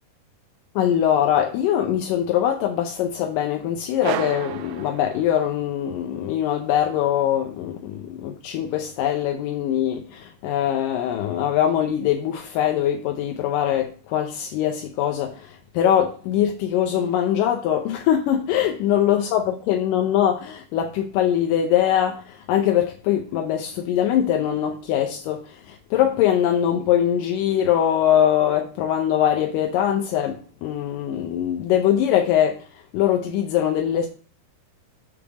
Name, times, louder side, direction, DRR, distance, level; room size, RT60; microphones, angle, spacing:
voice 1, 0.8-34.1, left 10 dB, 85° left, 2.3 m, -22 dB
sound 1, 4.0-5.8, right 12 dB, 90° right, 2.2 m, -32 dB
6.2 x 3.3 x 5.9 m
omnidirectional pair, 3.8 m